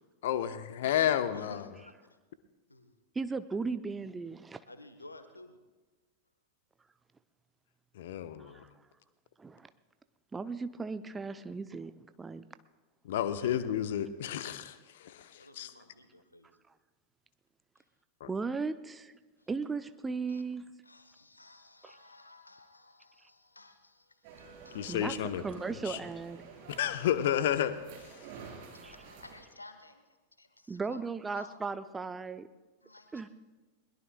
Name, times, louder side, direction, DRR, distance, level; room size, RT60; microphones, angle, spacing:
voice 1, 0.2-1.7 7.9-8.6 13.0-15.7 18.2-18.3 24.7-25.4 25.8-26.0 26.7-28.4, left 10 dB, 55° left, 11 dB, 0.9 m, -32 dB
voice 2, 1.3-1.9 2.7-2.9 4.7-5.6 15.3-16.5 17.8-17.9 19.4-19.5 20.3-20.4 20.8-25.0 28.3-31.0 31.3-31.6 32.8-33.3, left 2 dB, 80° left, 9 dB, 1.2 m, -54 dB
voice 3, 3.1-4.6 8.4-8.7 9.4-9.7 10.3-12.4 18.2-19.1 19.5-20.7 21.8-22.0 24.9-25.1 25.4-26.5 28.8-28.9 30.7-32.5 33.1-33.3, right 4 dB, 15° right, 12 dB, 0.6 m, -36 dB
sound 1, 24.2-29.4, right 5 dB, 45° right, 4.0 m, -50 dB
22.0 x 21.0 x 2.2 m, 1.3 s
figure-of-eight pair, 90°, 0 cm